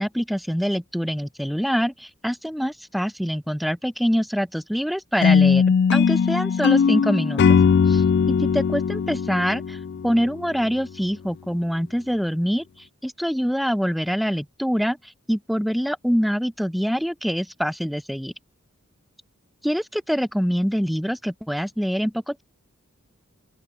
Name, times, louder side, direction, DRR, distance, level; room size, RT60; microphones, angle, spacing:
voice 1, 0.0-5.6 5.9-7.6 7.9-12.6 13.0-15.0 15.3-18.3 19.6-22.4, equal, ahead, 3.5 m, -25 dB
sound 1, 5.2-10.3, left 6 dB, 55° left, 0.3 m, -19 dB
open air
head